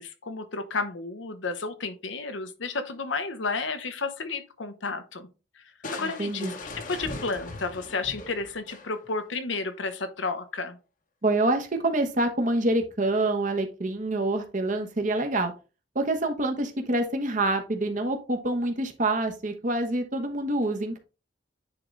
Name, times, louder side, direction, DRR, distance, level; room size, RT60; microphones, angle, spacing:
voice 1, 0.0-5.3 5.6-5.7 5.9-6.6 6.9-10.8, left 4 dB, 85° left, 1.0 m, -32 dB
Crushing, 5.8-9.2, left 2 dB, 45° left, 0.9 m, -39 dB
voice 2, 6.0-6.5 11.2-15.5 15.9-21.0, right 2 dB, 45° right, 1.1 m, -26 dB
9.5 x 3.8 x 3.2 m
head